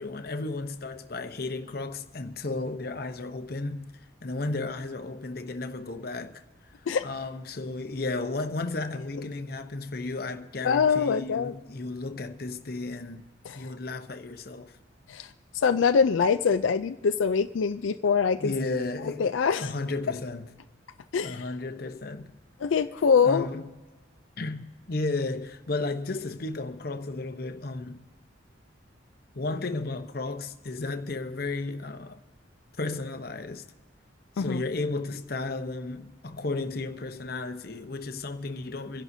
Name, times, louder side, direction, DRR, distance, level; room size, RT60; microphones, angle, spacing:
voice 1, 0.0-3.9 4.2-6.4 7.0-13.3 13.5-14.8 18.4-19.3 19.6-20.5 21.2-22.3 23.2-23.7 24.4-28.0 29.3-32.2 32.8-33.6 34.4-39.0, left 3 dB, 50° left, 0.8 m, -33 dB
voice 2, 10.6-11.5 13.5-13.6 15.1-15.3 15.6-18.5 19.2-19.7 21.1-21.4 22.6-23.5 34.4-34.6, left 6 dB, 85° left, 0.4 m, -24 dB
25.5 x 11.0 x 2.7 m
head